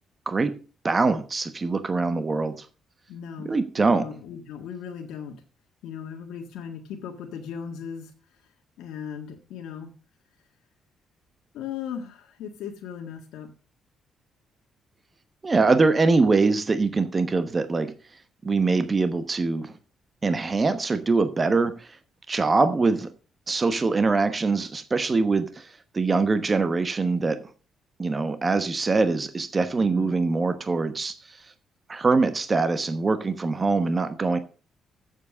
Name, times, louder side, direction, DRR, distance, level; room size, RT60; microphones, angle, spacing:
voice 1, 0.8-2.5 3.4-4.1 15.4-17.9 18.4-19.7 20.2-21.7 22.3-23.1 23.5-25.5 25.9-27.4 28.0-31.1 31.9-34.4, right 3 dB, 30° right, 1.0 m, -23 dB
voice 2, 3.1-5.3 5.8-8.1 8.8-9.9 11.5-13.5 29.8-30.1, left 7 dB, 90° left, 1.6 m, -37 dB
7.8 x 7.4 x 6.2 m
cardioid pair, 90°, 0 cm